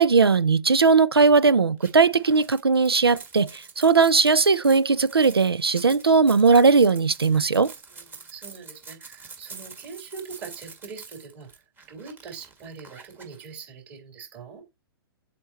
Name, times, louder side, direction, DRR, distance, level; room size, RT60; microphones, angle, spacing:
voice 1, 0.0-7.7, right 4 dB, 85° right, 0.5 m, -18 dB
sound 1, 1.8-13.5, right 4 dB, 15° right, 1.4 m, -46 dB
voice 2, 7.9-11.6 11.9-14.6, right 5 dB, 35° right, 3.4 m, -42 dB
7.6 x 4.3 x 3.1 m
figure-of-eight pair, 115°, 13 cm